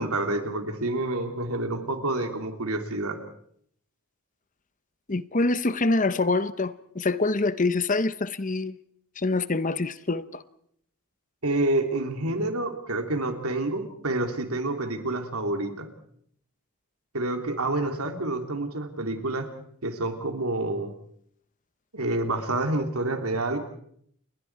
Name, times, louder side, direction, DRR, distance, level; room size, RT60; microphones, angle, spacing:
voice 1, 0.0-3.2 11.4-15.9 17.1-19.5 19.8-20.9 21.9-23.6, right 2 dB, 80° right, 3.2 m, -28 dB
voice 2, 5.1-8.8 9.2-10.4, left 3 dB, 35° left, 0.8 m, -25 dB
29.5 x 22.0 x 4.8 m
head